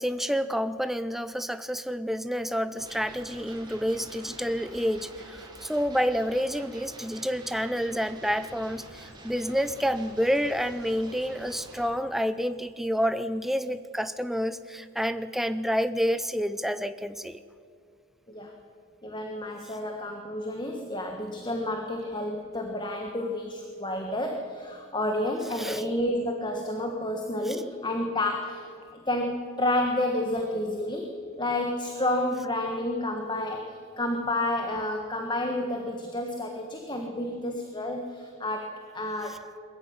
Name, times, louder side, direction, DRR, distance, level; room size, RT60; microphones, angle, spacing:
voice 1, 0.0-17.4 25.6-25.8 27.5-27.6, equal, ahead, 12 dB, 0.6 m, -29 dB
sound 1, 2.8-11.9, right 1 dB, 20° right, 3.4 m, -47 dB
voice 2, 19.0-28.7 28.9-39.5, left 1 dB, 20° left, 3 dB, 1.5 m, -30 dB
22.0 x 14.5 x 9.5 m, 2.3 s
head